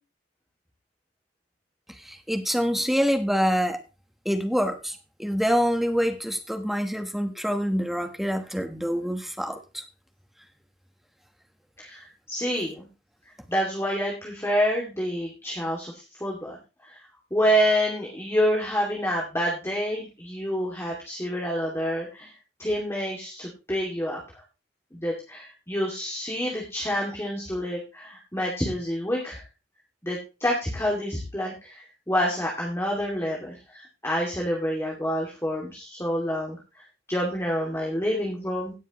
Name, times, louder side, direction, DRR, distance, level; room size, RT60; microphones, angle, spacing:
voice 1, 2.0-3.8 4.2-9.8, equal, ahead, 6 dB, 1.3 m, -26 dB
voice 2, 11.8-12.9 13.5-16.6 16.8-17.0 17.3-22.3 22.6-24.4 24.9-29.4 30.0-38.7, equal, 15° left, -2 dB, 2.6 m, -28 dB
17.5 x 7.2 x 3.1 m, 0.29 s
head